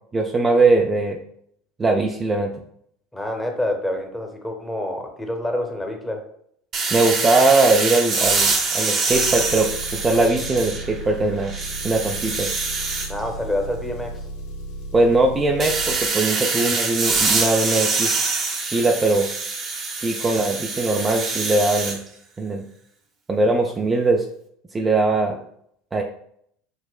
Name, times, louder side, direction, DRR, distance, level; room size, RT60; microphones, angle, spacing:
voice 1, 0.1-1.2 1.8-2.5 6.9-11.5 11.8-12.5 14.9-18.2 18.6-19.3 20.0-22.0 22.4-22.7 23.3-24.3 24.7-25.4 25.9-26.0, right 2 dB, 20° right, 1 dB, 0.4 m, -20 dB
voice 2, 3.1-6.2 13.1-14.2 25.1-25.2, left 1 dB, 10° left, 3 dB, 0.9 m, -27 dB
sound 1, 6.7-11.0 11.4-13.1 15.6-22.0, right 4 dB, 40° right, 0.8 m, -24 dB
Engine, 9.1-16.0, right 1 dB, 70° left, 0.7 m, -34 dB
6.0 x 2.0 x 2.2 m, 0.68 s
hypercardioid pair, 80°, 0 cm